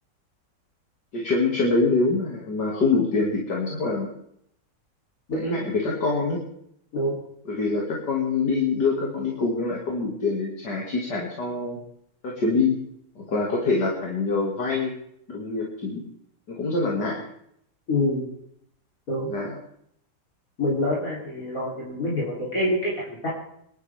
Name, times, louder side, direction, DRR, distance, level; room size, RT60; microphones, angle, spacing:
voice 1, 1.1-4.1 5.3-6.4 7.5-11.8 12.2-12.8 13.2-14.9 15.3-16.0 16.5-17.2 19.3-19.5, left 3 dB, 65° left, -2 dB, 2.9 m, -25 dB
voice 2, 17.9-18.2 19.1-19.3 20.6-23.3, left 1 dB, 50° left, -6 dB, 3.9 m, -26 dB
27.0 x 12.0 x 3.5 m, 0.72 s
omnidirectional pair, 1.9 m